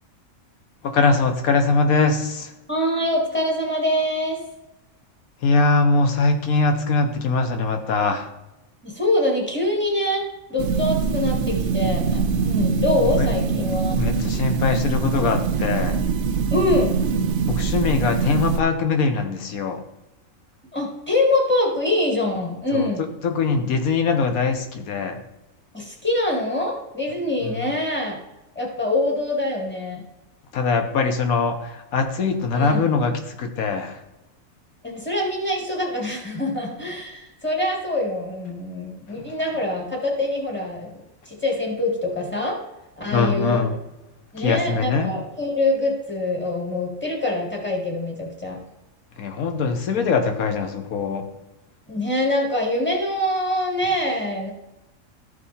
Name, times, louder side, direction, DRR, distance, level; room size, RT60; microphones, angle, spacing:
voice 1, 0.8-2.5 5.4-8.3 13.2-13.3 14.0-16.0 17.5-19.8 22.7-22.9 23.2-25.2 27.4-27.7 30.5-34.0 39.1-39.2 43.1-43.8 44.4-45.1 49.2-51.3, left 4 dB, 80° left, 6 dB, 1.3 m, -22 dB
voice 2, 2.7-4.4 8.8-10.2 10.5-14.0 16.5-16.9 20.7-23.0 25.7-28.2 28.6-30.0 32.5-32.9 34.8-40.9 41.3-42.6 43.0-43.6 44.3-48.6 51.9-54.5, left 1 dB, 10° left, -1 dB, 2.0 m, -24 dB
sound 1, 10.6-18.6, right 5 dB, 65° right, 0.9 m, -23 dB
13.5 x 4.8 x 4.2 m, 0.95 s
omnidirectional pair, 1.5 m